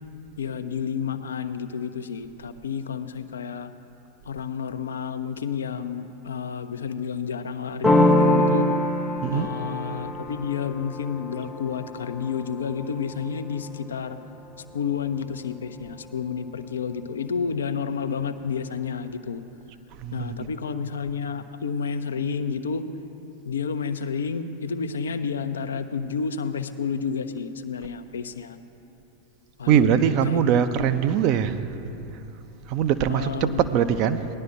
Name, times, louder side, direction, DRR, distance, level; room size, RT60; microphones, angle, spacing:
voice 1, 0.4-3.7 4.3-8.7 9.3-14.2 14.7-19.4 20.1-22.8 23.4-28.6 29.6-30.9 33.1-33.7, left 6 dB, 70° left, 10 dB, 0.5 m, -30 dB
sound 1, 7.8-13.4, left 1 dB, 5° left, 0.7 m, -24 dB
voice 2, 20.0-20.5 29.7-31.8 32.7-34.3, right 9 dB, 40° right, 10 dB, 0.5 m, -22 dB
19.0 x 11.0 x 2.5 m, 2.9 s
figure-of-eight pair, 90°, 0 cm